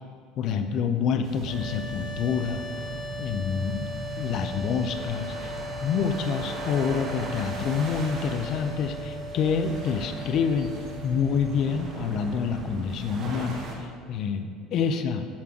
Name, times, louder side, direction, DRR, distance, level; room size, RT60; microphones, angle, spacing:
voice 1, 0.4-2.6 3.2-3.9 4.2-10.7 11.0-15.3, left 6 dB, 45° left, 8 dB, 0.5 m, -27 dB
sound 1, 1.2-13.8, right 2 dB, 35° right, 1.1 m, -38 dB
sound 2, 1.4-12.5, left 1 dB, 10° left, 0.7 m, -39 dB
8.4 x 3.7 x 6.0 m, 2.1 s
cardioid pair, 165°, 0 cm